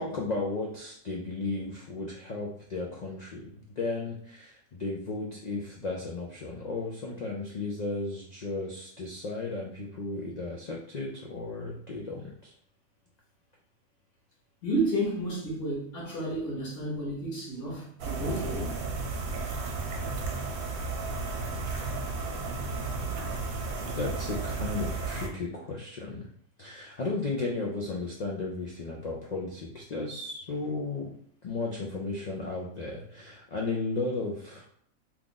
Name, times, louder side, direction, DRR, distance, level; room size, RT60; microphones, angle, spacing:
voice 1, 0.0-12.5 23.8-26.3 26.6-31.1 31.4-34.6, left 3 dB, 75° left, 0.3 m, -34 dB
voice 2, 14.6-18.9, right 1 dB, 50° left, 1.3 m, -31 dB
sound 1, 18.0-25.3, right 3 dB, 80° right, 1.1 m, -33 dB
3.0 x 2.4 x 3.7 m
omnidirectional pair, 1.5 m